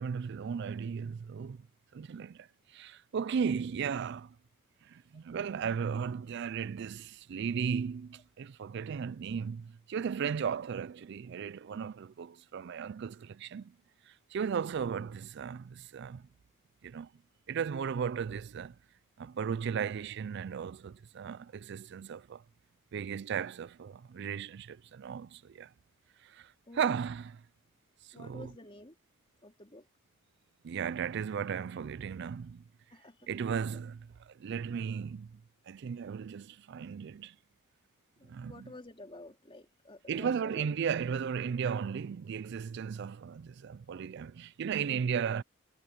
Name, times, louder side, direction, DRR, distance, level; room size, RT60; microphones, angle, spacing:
voice 1, 0.0-1.7 1.9-4.4 4.8-13.7 14.1-16.3 16.8-17.1 17.5-18.8 19.2-22.4 22.9-25.7 26.2-27.4 28.0-28.5 30.6-32.6 33.3-37.4 38.2-38.7 40.1-45.4, right 7 dB, 55° right, 0.3 m, -36 dB
voice 2, 26.7-27.0 28.1-29.0 29.4-29.9 32.9-33.3 38.2-40.7, left 2 dB, 25° left, 3.8 m, -50 dB
head